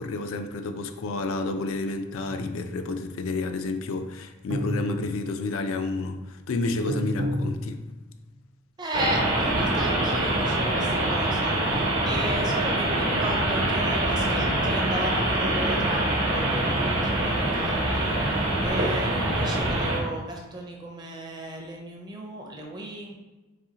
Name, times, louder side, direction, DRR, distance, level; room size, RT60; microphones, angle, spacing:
voice 1, 0.0-7.8, left 3 dB, 70° left, 6 dB, 0.3 m, -30 dB
sound 1, 2.3-2.9 4.5-5.5 6.9-8.2, equal, 85° right, 0.6 m, -31 dB
voice 2, 8.8-11.8 12.0-18.1 18.6-23.1, right 1 dB, 20° right, 0 dB, 0.5 m, -35 dB
sound 2, 8.9-20.0, right 1 dB, 65° right, 0.9 m, -24 dB
4.0 x 2.7 x 2.8 m, 1.2 s
head